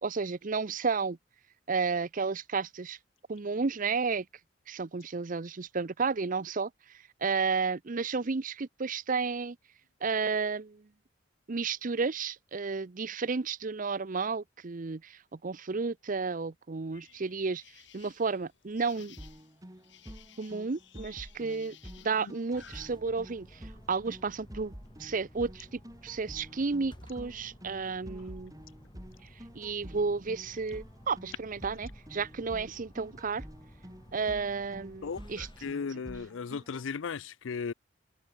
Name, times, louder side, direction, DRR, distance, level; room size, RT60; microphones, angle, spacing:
voice 1, 0.0-1.2 1.7-3.0 3.3-4.2 4.7-6.7 7.2-9.6 10.0-10.8 11.5-17.6 17.9-19.2 20.4-21.8 22.0-23.5 23.9-24.7 25.0-28.5 29.5-33.4 34.1-35.5, right 4 dB, 45° right, 0.6 m, -32 dB
sound 1, 16.9-22.9, left 9 dB, 65° left, 7.3 m, -57 dB
sound 2, 19.2-36.8, equal, 20° right, 4.3 m, -49 dB
sound 3, 22.5-35.7, equal, 25° left, 5.6 m, -54 dB
voice 2, 35.0-37.7, left 5 dB, 85° left, 0.5 m, -36 dB
head